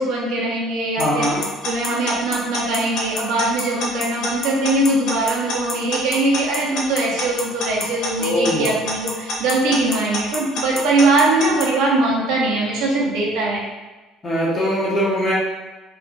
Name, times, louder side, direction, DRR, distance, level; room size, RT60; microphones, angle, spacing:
voice 1, 0.0-1.3 1.6-13.6, right 2 dB, 70° right, -3 dB, 0.7 m, -21 dB
Alarm / Clock, 1.0-11.7, left 3 dB, 55° left, 0.6 m, -26 dB
voice 2, 1.0-1.4 8.2-8.7 14.2-15.3, equal, 20° left, -6 dB, 0.7 m, -21 dB
3.2 x 2.4 x 2.5 m, 1.2 s
cardioid pair, 170°, 0 cm